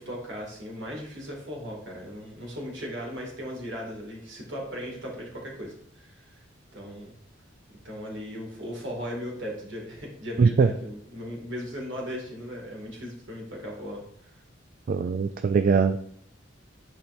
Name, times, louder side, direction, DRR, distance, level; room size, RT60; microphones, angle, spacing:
voice 1, 0.0-6.4 6.7-7.1 7.8-14.4, equal, 65° right, -1 dB, 2.3 m, -37 dB
voice 2, 14.9-16.0, right 5 dB, 45° right, 8 dB, 0.3 m, -21 dB
10.0 x 4.5 x 2.6 m, 0.69 s
head